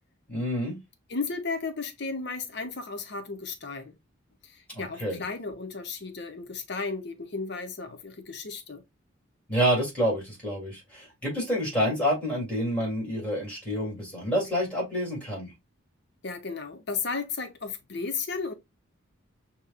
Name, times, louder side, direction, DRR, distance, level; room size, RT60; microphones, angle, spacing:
voice 1, 0.3-0.7 4.7-5.2 9.5-15.5, equal, 5° left, 2.7 m, -28 dB
voice 2, 1.1-4.0 4.4-8.8 16.2-18.5, left 4 dB, 50° left, 0.7 m, -34 dB
6.7 x 2.9 x 2.4 m
head